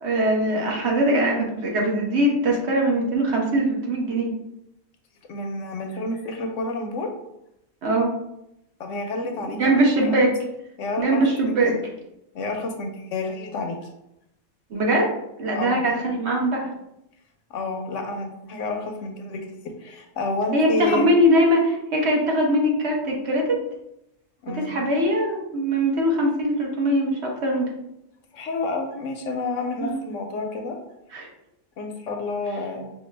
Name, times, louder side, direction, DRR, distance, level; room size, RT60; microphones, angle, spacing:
voice 1, 0.0-4.3 7.8-8.1 9.5-10.3 11.0-11.7 14.7-15.1 15.4-16.6 20.5-23.6 24.5-27.7 29.8-29.9 31.1-31.3, right 1 dB, 55° right, -1 dB, 1.1 m, -21 dB
voice 2, 5.3-7.1 8.8-10.2 10.8-11.8 12.3-13.8 15.6-16.0 17.5-19.4 19.8-21.1 24.4-24.7 28.3-30.8 31.8-32.9, left 3 dB, 70° left, 4 dB, 0.9 m, -30 dB
5.4 x 2.3 x 3.2 m, 0.83 s
omnidirectional pair, 1.4 m